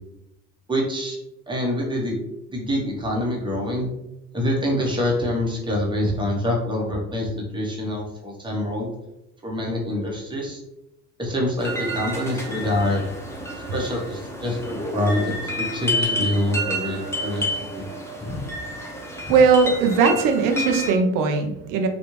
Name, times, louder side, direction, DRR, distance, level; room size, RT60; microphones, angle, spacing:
voice 1, 0.7-1.2 1.5-2.2 2.5-3.9 4.3-8.9 9.4-10.6 11.2-13.1 13.7-17.8, left 1 dB, 10° right, -2 dB, 1.0 m, -25 dB
sound 1, 11.6-20.9, equal, 5° left, 0.5 m, -29 dB
voice 2, 19.3-21.9, right 5 dB, 45° right, 5 dB, 0.6 m, -19 dB
3.5 x 2.4 x 3.0 m, 0.89 s
hypercardioid pair, 75°, 48 cm